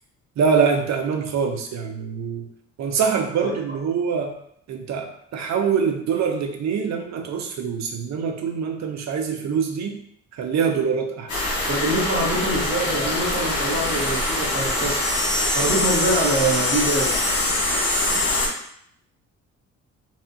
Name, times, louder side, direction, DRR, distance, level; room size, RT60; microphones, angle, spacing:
voice 1, 0.4-2.5 2.8-4.3 4.7-9.9 10.4-11.4, right 6 dB, 65° right, 3 dB, 0.7 m, -24 dB
voice 2, 3.4-3.8 11.7-15.0 15.5-17.1, right 2 dB, 40° right, -3 dB, 1.0 m, -24 dB
sound 1, 11.3-18.5, left 2 dB, 90° left, 1.1 m, -23 dB
4.1 x 2.4 x 2.7 m, 0.70 s
cardioid pair, 90°, 30 cm